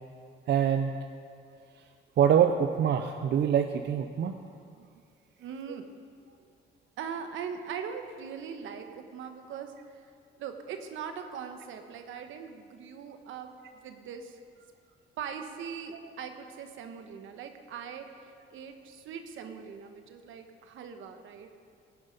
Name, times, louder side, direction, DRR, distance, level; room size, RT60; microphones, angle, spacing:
voice 1, 0.5-0.9 2.2-4.4, right 8 dB, 60° right, 6 dB, 0.7 m, -24 dB
voice 2, 5.4-5.9 7.0-10.0 10.4-13.5 13.8-14.4 15.2-21.5, right 7 dB, 80° right, 6 dB, 1.2 m, -41 dB
16.5 x 9.4 x 5.3 m, 2.3 s
cardioid pair, 90°, 20 cm